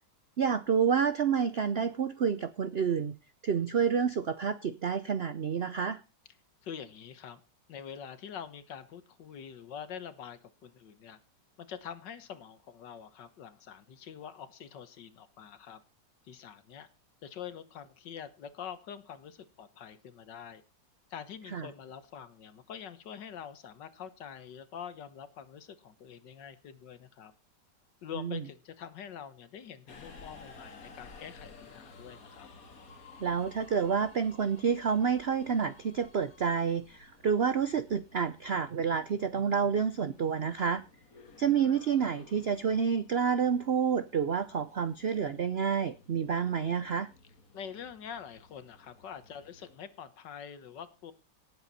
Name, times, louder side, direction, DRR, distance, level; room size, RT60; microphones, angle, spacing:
voice 1, 0.4-3.1 3.4-6.0 21.5-21.7 28.2-28.4 33.2-40.8 41.4-47.1, right 6 dB, 65° right, 13 dB, 0.6 m, -29 dB
voice 2, 6.6-7.4 7.7-11.2 11.6-15.8 16.2-16.9 17.2-20.6 21.1-27.3 28.0-32.5 47.5-51.1, left 8 dB, 75° left, 13 dB, 1.8 m, -45 dB
Subway metro underground, 29.9-49.8, left 3 dB, 50° left, 2.1 m, -55 dB
18.0 x 8.0 x 4.2 m, 0.31 s
omnidirectional pair, 2.0 m